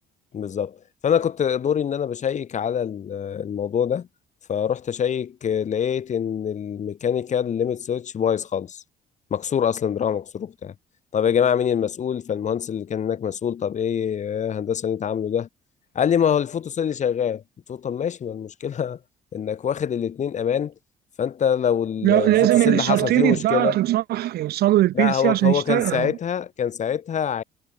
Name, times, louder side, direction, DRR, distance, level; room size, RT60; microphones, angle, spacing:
voice 1, 0.3-0.8 1.0-4.1 4.5-8.8 9.3-10.7 11.1-15.5 16.0-17.4 17.7-19.0 19.3-20.7 21.2-23.8 24.9-27.4, left 8 dB, 45° left, 3.5 m, -25 dB
voice 2, 22.0-26.2, right 14 dB, 70° right, 1.3 m, -20 dB
cardioid pair, 110°, 17 cm